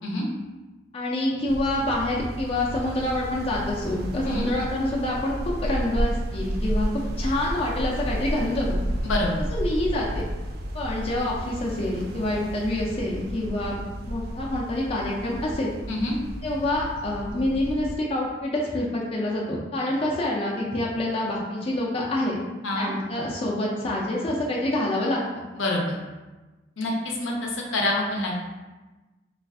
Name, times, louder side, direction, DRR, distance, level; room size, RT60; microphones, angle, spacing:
voice 1, 0.9-8.8 9.5-10.2 10.7-13.8 14.1-15.7 16.4-22.4 22.7-25.4, left 1 dB, 30° left, -4 dB, 0.4 m, -27 dB
sound 1, 1.5-18.0, equal, 55° right, 0.3 m, -32 dB
voice 2, 9.0-9.4 15.9-16.2 22.6-22.9 25.5-26.0 26.8-28.3, left 1 dB, 85° left, -1 dB, 0.6 m, -26 dB
2.4 x 2.4 x 3.5 m, 1.2 s
head